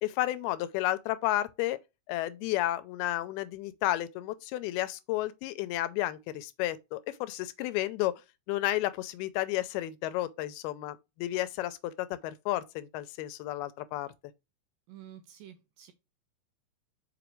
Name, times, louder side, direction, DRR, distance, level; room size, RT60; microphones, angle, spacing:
voice 1, 0.0-1.8 2.1-8.1 8.5-14.1, left 15 dB, 80° left, 2.4 m, -32 dB
voice 2, 14.9-15.9, right 11 dB, 80° right, 2.2 m, -50 dB
6.1 x 5.3 x 3.1 m
omnidirectional pair, 4.7 m